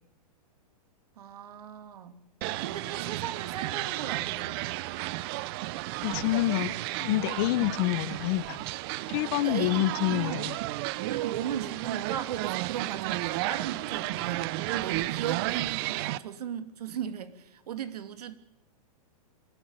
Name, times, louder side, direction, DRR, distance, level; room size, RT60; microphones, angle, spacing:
voice 1, 1.2-2.2 2.6-4.7 9.4-10.4 11.0-18.3, right 9 dB, 75° right, 11 dB, 2.7 m, -37 dB
sound 1, 2.4-16.2, right 18 dB, 40° right, 0.7 m, -33 dB
voice 2, 6.0-8.6 9.1-10.6, left 17 dB, 40° left, 18 dB, 1.0 m, -27 dB
27.5 x 13.5 x 9.2 m, 0.92 s
hypercardioid pair, 150°, 20 cm